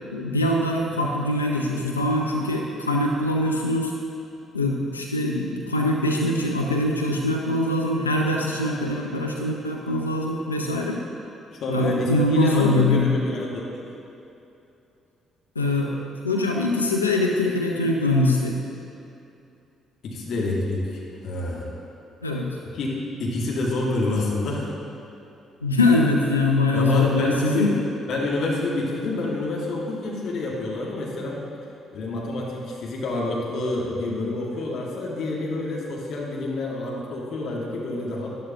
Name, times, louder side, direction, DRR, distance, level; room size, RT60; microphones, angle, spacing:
voice 1, 0.1-3.9 4.5-11.0 11.7-13.1 15.6-15.9 16.2-18.6 22.2-22.5 25.6-27.8, left 2 dB, 90° left, 0 dB, 0.6 m, -23 dB
voice 2, 11.6-13.8 20.0-21.7 22.7-22.9 23.2-24.7 26.7-27.7 28.1-31.4 31.9-38.3, left 2 dB, 60° left, -3 dB, 1.9 m, -27 dB
12.0 x 11.5 x 2.9 m, 2.8 s
figure-of-eight pair, 45°, 0 cm